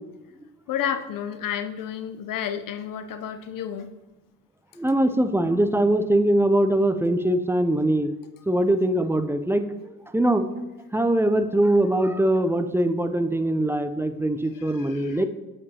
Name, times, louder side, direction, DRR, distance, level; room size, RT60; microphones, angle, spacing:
voice 1, 0.7-3.9 14.5-15.2, left 9 dB, 55° left, 9 dB, 0.6 m, -31 dB
voice 2, 4.8-8.1 8.5-9.7 10.1-10.5 10.9-15.2, right 1 dB, 5° right, 9 dB, 0.5 m, -22 dB
8.1 x 6.9 x 2.8 m, 1.1 s
hypercardioid pair, 60°, 41 cm